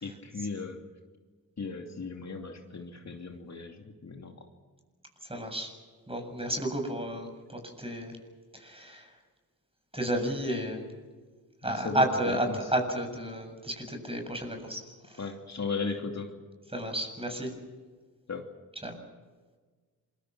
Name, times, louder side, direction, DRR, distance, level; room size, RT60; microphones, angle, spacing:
voice 1, 0.0-0.8 1.6-4.5 11.6-12.7 15.2-16.3 18.3-18.5, left 4 dB, 45° left, 3 dB, 2.8 m, -36 dB
voice 2, 5.2-5.7 6.1-8.2 8.5-9.1 9.9-10.8 11.6-14.8 15.1-15.2 16.7-17.5 18.8-19.0, right 1 dB, 15° right, 4 dB, 7.8 m, -32 dB
27.5 x 23.0 x 6.2 m, 1.4 s
cardioid pair, 60°, 38 cm